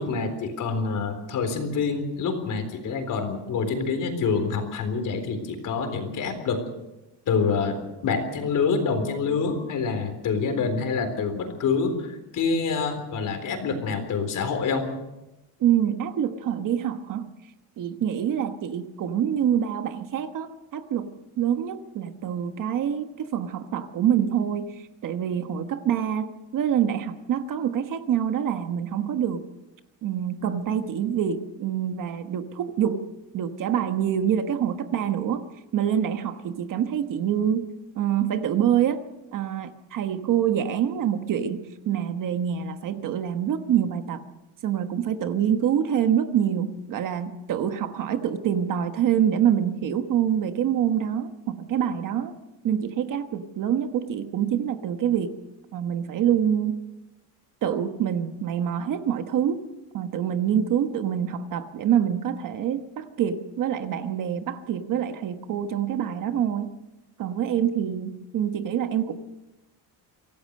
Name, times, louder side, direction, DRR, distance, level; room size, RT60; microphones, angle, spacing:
voice 1, 0.0-6.6 7.3-14.9, left 5 dB, 45° left, 7 dB, 3.9 m, -26 dB
voice 2, 15.6-17.3 17.8-29.4 30.0-33.0 33.3-35.4 35.7-37.7 37.9-39.0 39.3-44.2 44.6-52.3 52.6-55.3 55.7-56.8 57.6-59.6 59.9-66.7 67.2-69.1, right 9 dB, 45° right, 8 dB, 1.3 m, -26 dB
25.0 x 17.0 x 6.5 m, 0.98 s
cardioid pair, 180°, 44 cm